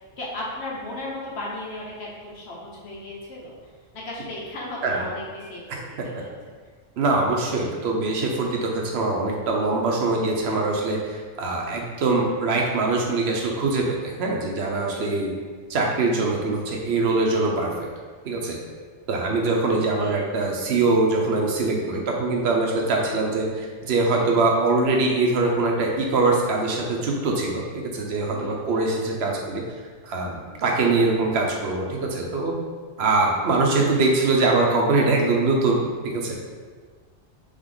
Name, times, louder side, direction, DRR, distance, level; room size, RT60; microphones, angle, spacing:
voice 1, 0.2-3.5 3.9-6.3 20.0-20.2 28.3-28.9, left 1 dB, 65° left, -4 dB, 1.2 m, -35 dB
voice 2, 7.0-15.3 15.7-17.9 18.2-18.6 19.1-29.6 30.0-32.5 33.0-35.8 36.0-36.3, right 3 dB, 65° right, 0 dB, 1.0 m, -23 dB
3.6 x 3.5 x 3.7 m, 1.5 s
omnidirectional pair, 1.2 m